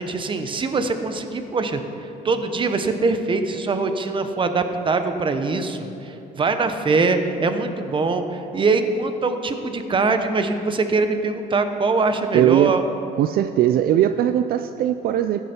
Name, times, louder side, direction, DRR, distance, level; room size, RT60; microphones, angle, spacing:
voice 1, 0.0-12.8, right 3 dB, 30° right, 8 dB, 1.0 m, -23 dB
voice 2, 12.3-12.7 13.2-15.4, right 11 dB, 60° right, 9 dB, 0.4 m, -19 dB
15.0 x 10.0 x 4.5 m, 2.9 s
cardioid pair, 110°, 17 cm